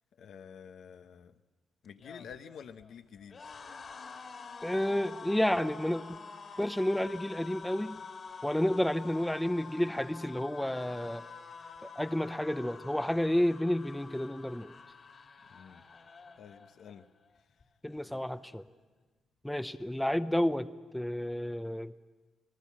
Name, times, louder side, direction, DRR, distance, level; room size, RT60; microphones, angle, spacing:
voice 1, 0.2-1.3 1.8-3.4 15.5-15.8 16.4-17.0 18.0-18.2, left 7 dB, 65° left, 8 dB, 1.1 m, -49 dB
sound 1, 1.9-17.1 17.4-17.6 17.9-18.7, left 5 dB, 45° left, 2.6 m, -48 dB
voice 2, 4.6-6.0 6.6-8.0 8.4-11.2 12.0-14.7 17.8-18.6 19.4-20.7 20.9-21.9, left 1 dB, 5° left, 11 dB, 0.8 m, -30 dB
27.5 x 20.0 x 7.4 m, 1.3 s
cardioid pair, 90°, 0 cm